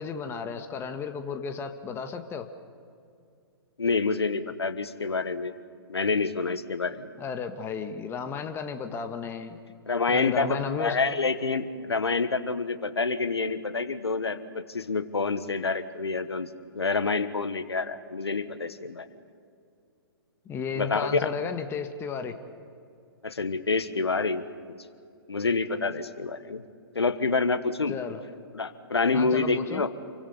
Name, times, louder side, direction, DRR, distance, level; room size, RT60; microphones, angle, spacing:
voice 1, 0.0-2.5 7.2-9.6 10.1-11.0 20.4-22.3 27.9-28.2 29.1-29.8, left 6 dB, 20° left, 7 dB, 1.5 m, -33 dB
voice 2, 3.8-5.5 5.9-7.1 9.9-19.1 20.7-21.3 23.2-24.7 25.3-26.6 26.9-28.0 28.5-29.9, left 4 dB, 85° left, 11 dB, 1.4 m, -27 dB
28.5 x 24.0 x 5.5 m, 2.4 s
figure-of-eight pair, 125°, 13 cm